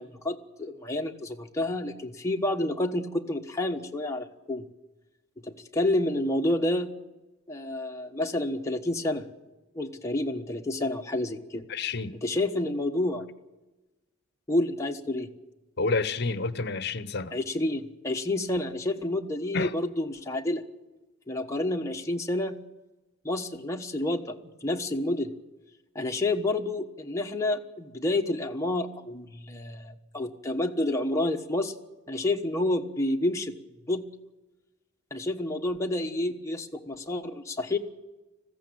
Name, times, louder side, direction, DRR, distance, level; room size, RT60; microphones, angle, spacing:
voice 1, 0.0-4.7 5.4-6.9 7.5-9.3 9.7-11.6 12.2-13.2 14.5-15.3 17.3-20.6 21.3-22.6 23.2-25.3 25.9-31.7 32.1-33.5 33.9-34.0 35.1-37.8, left 1 dB, 15° left, 1.3 m, -29 dB
voice 2, 11.7-12.2 15.8-17.3 19.5-19.7, left 3 dB, 50° left, 0.9 m, -29 dB
20.5 x 15.5 x 8.7 m
head